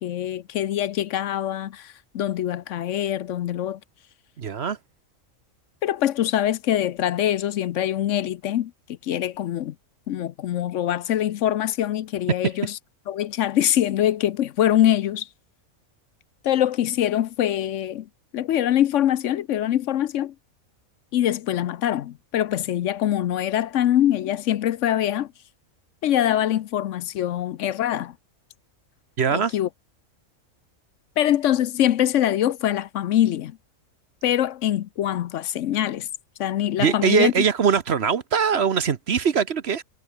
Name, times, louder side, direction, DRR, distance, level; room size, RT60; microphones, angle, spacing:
voice 1, 0.0-3.8 5.8-8.7 9.0-9.7 10.1-12.8 13.1-15.3 16.4-18.1 18.3-20.3 21.1-25.3 26.0-28.1 29.3-29.7 31.2-33.6 34.2-36.1 36.4-37.3, left 11 dB, 70° left, 0.9 m, -23 dB
voice 2, 4.4-4.8 29.2-29.5 36.8-39.8, right 7 dB, 50° right, 1.2 m, -21 dB
omnidirectional pair, 1.4 m